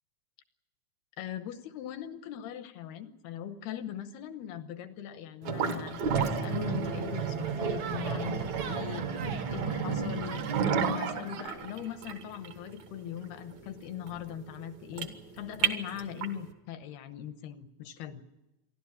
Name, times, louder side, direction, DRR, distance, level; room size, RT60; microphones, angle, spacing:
voice 1, 1.2-10.4 10.7-18.2, left 10 dB, 75° left, 10 dB, 2.5 m, -40 dB
sound 1, 5.4-16.4, right 6 dB, 60° right, 1.8 m, -32 dB
Yell, 6.2-6.5 7.8-9.5 10.2-11.5, right 7 dB, 85° right, 1.4 m, -42 dB
27.5 x 12.0 x 9.9 m, 1.0 s
omnidirectional pair, 5.4 m